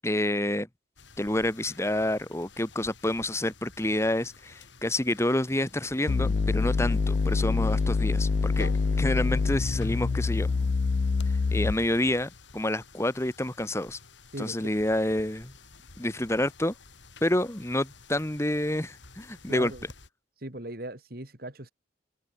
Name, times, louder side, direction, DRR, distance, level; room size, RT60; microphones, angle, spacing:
voice 1, 0.0-0.7 1.2-10.5 11.5-14.0 14.4-15.5 16.0-16.7 17.2-19.7, left 1 dB, 15° left, 1.5 m, -28 dB
sound 1, 1.0-20.1, left 3 dB, 85° left, 4.0 m, -51 dB
sound 2, 5.3-10.7, equal, 15° right, 6.1 m, -54 dB
sound 3, 6.1-12.0, left 4 dB, 50° left, 0.4 m, -26 dB
voice 2, 14.3-14.7 19.5-19.9 20.4-21.7, right 1 dB, 55° right, 3.2 m, -38 dB
open air
head